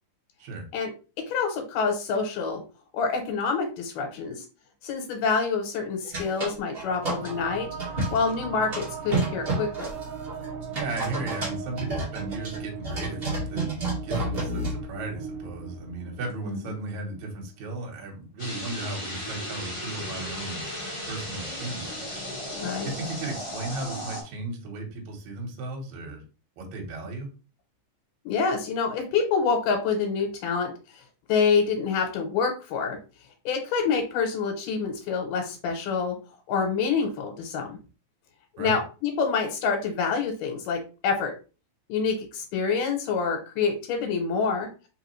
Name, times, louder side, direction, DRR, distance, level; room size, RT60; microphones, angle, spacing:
voice 1, 1.3-2.6 2.9-4.4 4.8-7.7 8.1-9.9 16.4-16.6 22.5-22.9 28.3-31.0 31.3-33.0 33.5-36.2 36.5-37.8 38.6-41.3 41.9-44.7, left 5 dB, 80° left, 3 dB, 2.4 m, -27 dB
sound 1, 6.0-7.3 7.8-8.3 8.7-14.8, right 2 dB, 50° right, 0.7 m, -30 dB
sound 2, 6.7-17.6, right 5 dB, 90° right, 2.3 m, -38 dB
voice 2, 10.7-13.8 14.0-20.6 21.1-21.9 22.8-26.2 26.6-27.3 38.6-38.8, right 2 dB, 65° right, 1 dB, 2.3 m, -35 dB
sound 3, 18.4-24.2, equal, 20° left, 0.8 m, -35 dB
4.8 x 3.4 x 3.1 m, 0.34 s
omnidirectional pair, 3.7 m